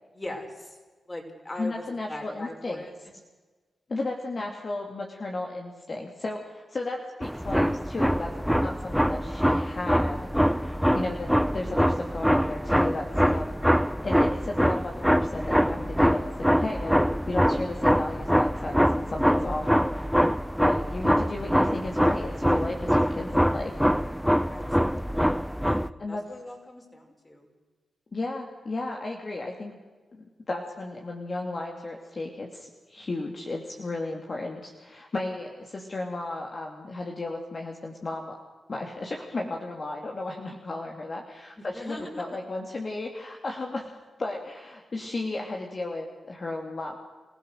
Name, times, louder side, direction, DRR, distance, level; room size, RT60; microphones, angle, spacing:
voice 1, 0.1-0.8 1.1-3.0 4.4-4.5 24.5-25.4 25.6-27.5 41.6-42.4, left 1 dB, 25° left, 2 dB, 5.7 m, -40 dB
voice 2, 1.6-2.8 3.9-8.3 8.6-10.3 10.9-13.5 14.0-19.7 19.9-20.1 20.6-23.8 26.0-26.2 28.1-29.8 30.1-38.4 38.7-43.9 44.2-47.0, left 2 dB, 50° left, 0 dB, 2.7 m, -34 dB
sound 1, 7.2-25.9, equal, ahead, 0.7 m, -24 dB
28.0 x 16.0 x 6.7 m, 1.3 s
cardioid pair, 50°, 0 cm